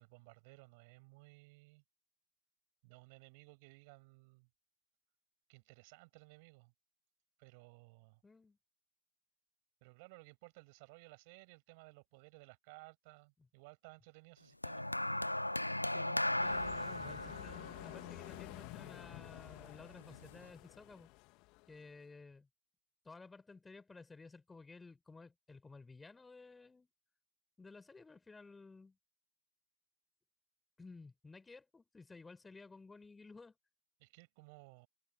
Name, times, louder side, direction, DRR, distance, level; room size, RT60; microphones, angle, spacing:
voice 1, 0.0-1.8 2.8-4.5 5.5-6.7 7.4-8.2 9.8-14.9 34.0-34.9, right 29 dB, 45° right, 7.4 m, -58 dB
voice 2, 8.2-8.6 15.9-21.1 21.7-22.5 23.0-26.9 27.6-29.0 30.8-33.6, left 3 dB, 10° left, 5.3 m, -55 dB
sound 1, 14.6-19.1 20.0-20.2, left 1 dB, 85° left, 0.6 m, -37 dB
sound 2, 16.4-22.0, left 25 dB, 40° left, 2.4 m, -51 dB
figure-of-eight pair, 90°, 0 cm